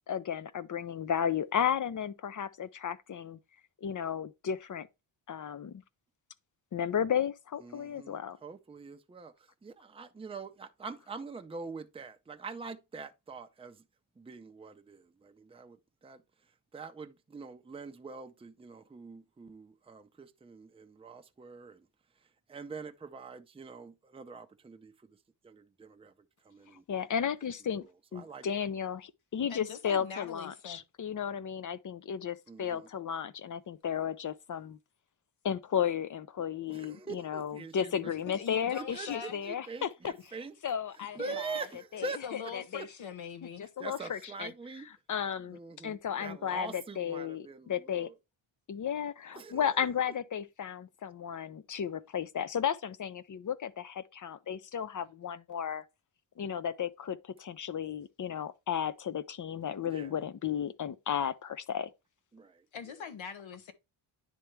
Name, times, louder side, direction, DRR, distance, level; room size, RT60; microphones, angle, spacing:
voice 1, 0.1-3.4 3.8-4.9 5.3-5.8 6.7-8.4 26.9-27.9 28.1-34.8 35.4-40.1 40.6-41.7 41.9-42.9 43.6-48.1 48.7-55.8 56.4-61.9, left 8 dB, 40° left, 0.5 m, -34 dB
voice 2, 7.6-9.3 9.6-13.8 14.2-15.8 16.0-16.2 16.7-21.9 22.5-24.9 25.4-26.1 26.5-26.8 28.2-28.5 32.5-32.9 36.7-38.1 38.7-39.1 39.4-40.5 41.1-42.2 43.8-44.9 45.5-48.1 49.4-49.6 59.9-60.1 62.3-62.6, right 5 dB, 10° right, 0.5 m, -44 dB
voice 3, 29.5-30.8 38.3-39.4 41.2-41.4 42.0-43.7 62.7-63.7, left 7 dB, 65° left, 1.1 m, -42 dB
10.0 x 3.4 x 3.1 m
cardioid pair, 100°, 50 cm